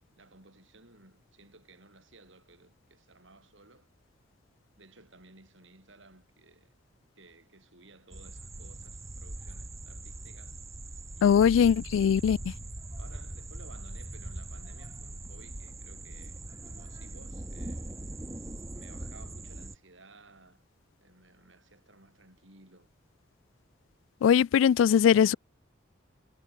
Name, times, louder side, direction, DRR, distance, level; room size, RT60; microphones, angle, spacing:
voice 1, 0.2-3.9 4.8-6.8 7.2-10.6 11.2-11.6 13.0-18.0 18.7-20.6 21.0-22.9, right 2 dB, 80° right, 7.4 m, -57 dB
sound 1, 8.1-19.8, right 2 dB, 15° right, 0.7 m, -41 dB
voice 2, 11.2-12.4 24.2-25.3, left 8 dB, 90° left, 0.3 m, -21 dB
head